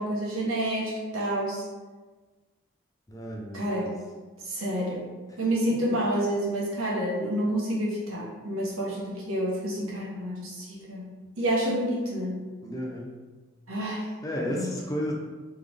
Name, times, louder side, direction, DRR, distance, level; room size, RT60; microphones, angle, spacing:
voice 1, 0.0-1.6 3.5-3.9 4.4-5.1 5.4-12.4 13.7-14.0 14.5-14.7, right 1 dB, 85° right, -4 dB, 1.3 m, -29 dB
voice 2, 3.1-4.0 5.3-5.4 5.9-6.0 12.6-13.1 14.2-15.1, equal, 15° left, -1 dB, 0.5 m, -33 dB
3.7 x 3.4 x 3.5 m, 1.3 s
head